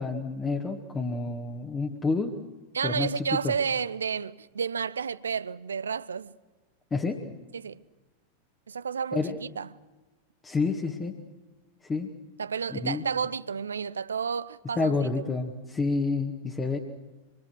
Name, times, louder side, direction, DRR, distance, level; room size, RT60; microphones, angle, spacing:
voice 1, 0.0-2.4 2.8-3.5 6.9-7.2 9.1-9.4 10.4-11.2 11.8-12.1 12.7-13.0 14.8-16.8, left 3 dB, 15° left, 1.9 m, -29 dB
voice 2, 2.7-6.3 7.5-7.8 8.7-9.2 9.6-9.7 12.4-14.9, right 6 dB, 70° right, 0.7 m, -31 dB
26.0 x 24.0 x 6.4 m
figure-of-eight pair, 90°, 0 cm